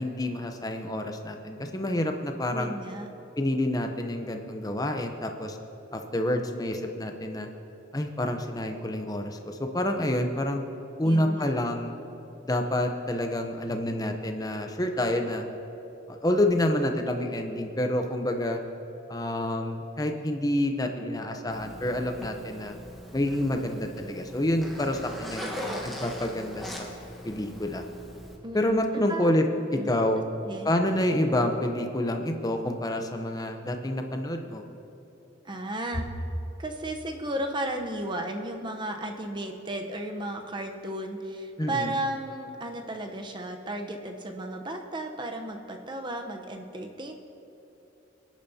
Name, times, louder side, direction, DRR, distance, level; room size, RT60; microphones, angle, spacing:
voice 1, 0.0-2.7 3.4-5.6 5.9-7.5 7.9-10.6 11.0-11.9 12.4-15.4 16.1-18.6 19.1-22.7 23.1-25.5 25.8-26.9 27.2-27.8 28.5-29.4 29.7-30.2 30.6-34.6 41.6-41.9, left 1 dB, 20° left, 4 dB, 0.7 m, -28 dB
voice 2, 2.5-3.1 11.0-11.6 25.4-26.0 28.4-28.8 29.1-29.4 29.7-30.0 30.4-30.7 35.4-36.1 36.6-47.1, right 1 dB, 25° right, 4 dB, 0.8 m, -34 dB
Zipper (clothing), 21.5-28.4, equal, ahead, 1.2 m, -40 dB
23.5 x 10.5 x 2.8 m, 3.0 s
head